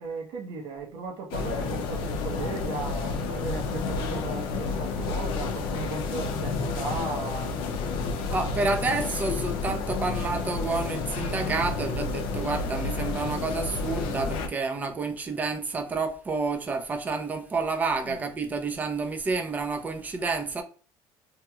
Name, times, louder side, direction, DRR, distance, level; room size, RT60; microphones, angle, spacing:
voice 1, 0.0-7.6 18.0-18.3, right 4 dB, 60° right, 0.8 m, -36 dB
sound 1, 1.3-14.5, left 4 dB, 70° left, 0.6 m, -30 dB
voice 2, 8.3-20.6, right 4 dB, 20° right, 0.5 m, -29 dB
3.0 x 2.9 x 2.3 m
cardioid pair, 150°, 9 cm